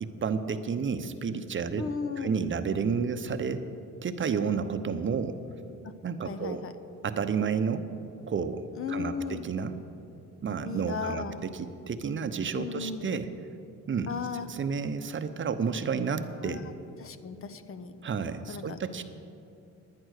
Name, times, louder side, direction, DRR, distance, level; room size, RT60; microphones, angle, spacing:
voice 1, 0.0-1.8 2.1-3.7 4.0-5.4 6.0-6.6 7.0-7.9 8.3-9.8 10.4-13.3 13.9-14.1 14.5-16.7 18.0-19.0, right 6 dB, 40° right, 9 dB, 0.7 m, -31 dB
voice 2, 1.8-2.3 6.2-6.7 8.8-9.4 10.6-11.4 12.5-13.2 14.1-14.5 16.4-16.7 17.0-18.0 18.5-18.8, left 5 dB, 45° left, 11 dB, 0.8 m, -35 dB
10.5 x 10.5 x 6.5 m, 2.6 s
cardioid pair, 90°, 30 cm